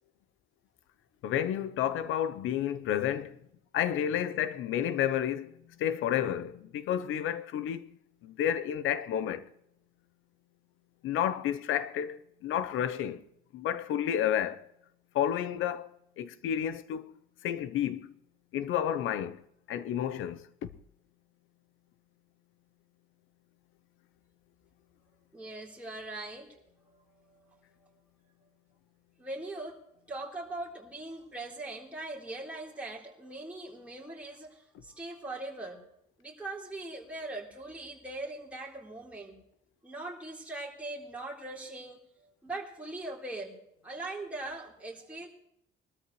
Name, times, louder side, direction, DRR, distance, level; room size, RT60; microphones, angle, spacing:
voice 1, 1.2-3.4 3.7-7.9 8.2-9.5 11.0-13.2 13.5-14.7 15.1-15.9 16.2-18.1 18.5-19.4 19.7-20.5, left 10 dB, 85° left, 0.9 m, -31 dB
voice 2, 25.3-26.5 26.9-27.9 29.2-29.8 30.1-35.8 36.2-39.4 39.8-43.5 43.8-45.3, right 2 dB, 5° right, 3.9 m, -41 dB
22.0 x 13.5 x 3.2 m
cardioid pair, 90°, 20 cm